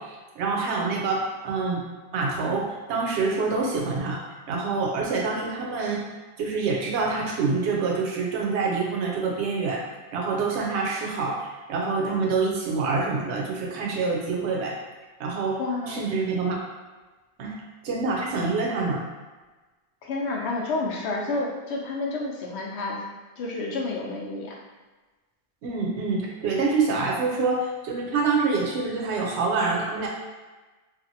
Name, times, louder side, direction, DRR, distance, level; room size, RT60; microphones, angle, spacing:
voice 1, 0.0-1.9 2.1-6.1 6.4-9.8 10.1-14.8 15.2-15.6 15.9-16.6 17.4-17.6 17.8-19.0 25.6-30.1, right 4 dB, 85° right, -1 dB, 0.9 m, -26 dB
voice 2, 15.6-16.1 20.0-23.1 23.4-24.6, left 3 dB, 80° left, -1 dB, 0.8 m, -30 dB
2.8 x 2.5 x 2.6 m, 1.2 s
omnidirectional pair, 1.1 m